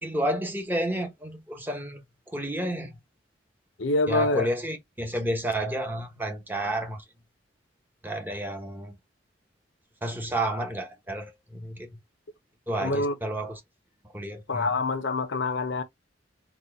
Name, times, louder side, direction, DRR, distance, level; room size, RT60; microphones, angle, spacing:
voice 1, 0.0-2.0 2.3-2.9 4.1-7.0 8.0-8.9 10.0-11.9 12.7-13.6 14.1-14.7, right 1 dB, 10° right, 0.9 m, -31 dB
voice 2, 3.8-4.5 12.8-13.2 14.5-15.8, left 3 dB, 70° left, 0.7 m, -26 dB
4.2 x 2.3 x 3.5 m
head